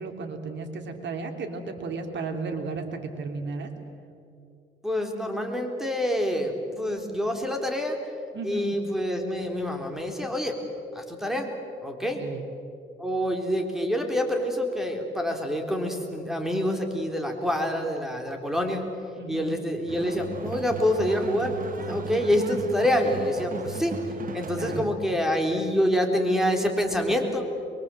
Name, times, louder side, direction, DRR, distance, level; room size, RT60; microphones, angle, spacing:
voice 1, 0.0-3.7 8.3-8.8 12.0-12.4 19.2-19.6 24.5-24.9, right 4 dB, 65° right, 4 dB, 3.1 m, -34 dB
voice 2, 4.8-8.0 8.4-10.6 10.9-11.5 11.8-12.2 13.0-18.8 19.3-23.9 24.3-27.5, equal, ahead, 3 dB, 3.8 m, -26 dB
sound 1, 19.9-24.9, right 5 dB, 45° right, 1.9 m, -36 dB
23.0 x 23.0 x 7.8 m, 2.6 s
cardioid pair, 90°, 20 cm